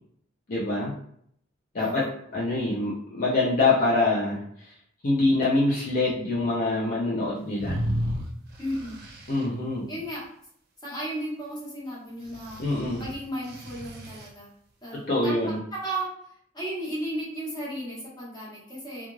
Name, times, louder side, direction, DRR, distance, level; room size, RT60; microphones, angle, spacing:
voice 1, 0.5-0.9 1.7-2.1 2.3-4.7 5.0-7.8 9.3-9.9 12.6-13.0 14.9-15.6, left 2 dB, 45° left, -7 dB, 0.6 m, -25 dB
voice 2, 1.8-2.1 8.6-9.0 9.9-10.3 10.8-12.6 13.0-14.5 14.8-15.0 15.2-16.1 16.5-19.1, right 1 dB, 20° left, -6 dB, 1.1 m, -34 dB
sound 1, 7.6-9.5 12.3-14.3, equal, 55° right, 0.5 m, -33 dB
2.4 x 2.4 x 3.1 m, 0.66 s
head